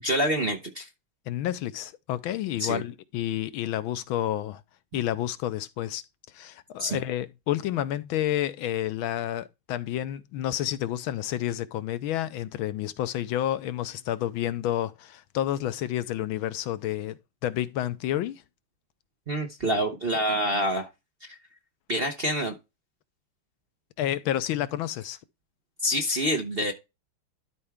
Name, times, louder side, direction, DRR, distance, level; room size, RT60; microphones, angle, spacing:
voice 1, 0.0-0.9 2.6-2.8 6.8-7.0 19.3-20.9 21.2-21.4 21.9-22.6 25.8-26.7, equal, 45° right, 0.8 m, -27 dB
voice 2, 1.3-4.6 4.9-6.0 6.3-18.4 24.0-25.2, left 12 dB, 80° left, 1.4 m, -30 dB
12.5 x 4.4 x 3.5 m
omnidirectional pair, 2.3 m